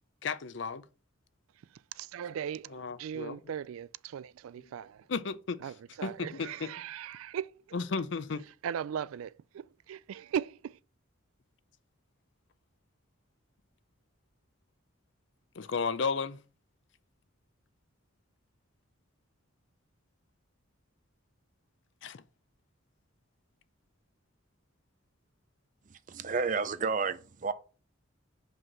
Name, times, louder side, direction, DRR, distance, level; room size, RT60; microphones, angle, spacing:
voice 1, 0.2-0.9 2.7-3.4 4.6-4.7 5.1-5.7 6.0-6.7 7.7-8.5 15.6-16.4 22.0-22.2, left 5 dB, 60° left, 0.5 m, -34 dB
voice 2, 1.9-5.0 5.6-7.5 8.6-10.8, right 8 dB, 90° right, 0.3 m, -38 dB
voice 3, 25.9-27.5, right 5 dB, 40° right, 0.6 m, -31 dB
5.7 x 5.4 x 5.9 m
head